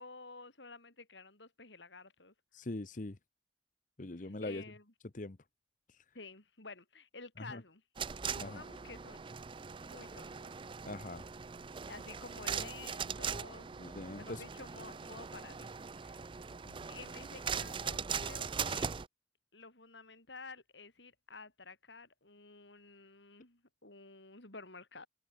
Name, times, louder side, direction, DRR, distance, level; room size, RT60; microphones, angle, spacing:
voice 1, 0.0-2.3 4.2-4.9 6.1-7.8 8.2-9.2 9.8-10.5 11.9-15.7 16.0-16.3 16.9-19.0 19.5-25.1, left 3 dB, 85° left, 5.2 m, -52 dB
voice 2, 2.5-3.2 4.0-4.6 5.1-5.4 5.9-6.0 7.4-7.6 8.4-8.6 10.8-11.3 13.8-14.4 16.6-16.8, left 2 dB, 45° left, 1.0 m, -42 dB
sound 1, 8.0-19.1, right 6 dB, 30° right, 0.5 m, -40 dB
head